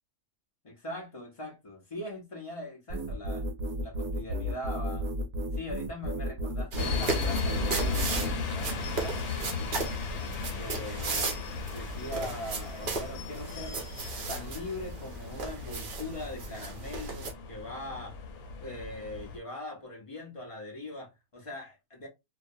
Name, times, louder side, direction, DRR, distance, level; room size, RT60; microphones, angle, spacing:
voice 1, 0.6-3.4 3.8-5.1 5.5-9.7 10.5-11.4 11.7-13.9 14.3-18.2 18.6-22.1, left 1 dB, 50° left, 0.4 m, -41 dB
sound 1, 2.9-8.4, left 1 dB, 75° right, 1.0 m, -32 dB
sound 2, 6.7-17.3, right 3 dB, 55° right, 0.6 m, -36 dB
sound 3, 6.8-19.4, left 4 dB, 90° left, 1.1 m, -36 dB
2.4 x 2.1 x 2.5 m
omnidirectional pair, 1.5 m